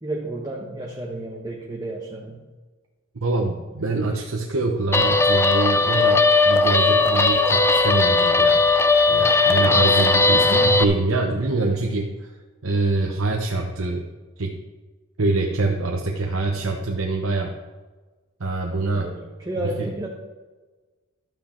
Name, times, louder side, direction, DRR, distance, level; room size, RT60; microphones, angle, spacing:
voice 1, 0.0-2.5 10.3-10.9 18.9-20.1, right 1 dB, 20° right, -2 dB, 1.2 m, -32 dB
voice 2, 3.1-12.3 12.6-14.1 14.4-14.6 15.2-17.5 18.4-19.1 19.6-20.1, right 3 dB, 70° right, 1 dB, 1.0 m, -25 dB
Guitar, 4.9-10.8, left 3 dB, 10° left, 0.6 m, -18 dB
12.5 x 8.9 x 4.4 m, 1.3 s
head